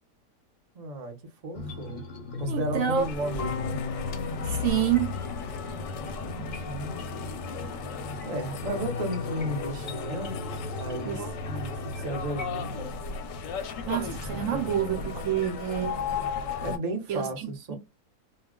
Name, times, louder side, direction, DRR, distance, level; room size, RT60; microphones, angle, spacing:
voice 1, 0.7-2.0 2.3-3.8 6.2-7.0 7.6-7.7 8.2-13.0 14.3-14.6 15.1-15.2 16.6-17.7, right 1 dB, 45° right, 0.5 m, -35 dB
sound 1, 1.5-12.5, left 3 dB, 45° left, 0.6 m, -38 dB
voice 2, 2.5-3.0 4.5-5.1 11.1-11.7 13.9-16.2 17.1-17.8, right 9 dB, 65° right, 0.9 m, -28 dB
sound 2, 3.0-16.8, left 4 dB, 70° left, 0.9 m, -36 dB
sound 3, 3.2-8.2, left 7 dB, 90° left, 1.1 m, -39 dB
2.4 x 2.2 x 3.5 m
omnidirectional pair, 1.6 m